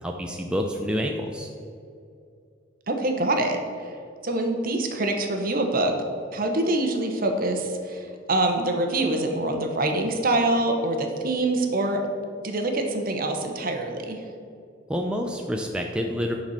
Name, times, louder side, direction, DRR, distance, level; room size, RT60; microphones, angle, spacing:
voice 1, 0.0-1.5 14.9-16.3, equal, 5° right, 1 dB, 0.5 m, -28 dB
voice 2, 2.9-3.6 4.2-5.9 6.3-12.0 12.4-14.2, right 2 dB, 50° right, 4 dB, 1.0 m, -25 dB
9.1 x 4.2 x 6.5 m, 2.4 s
head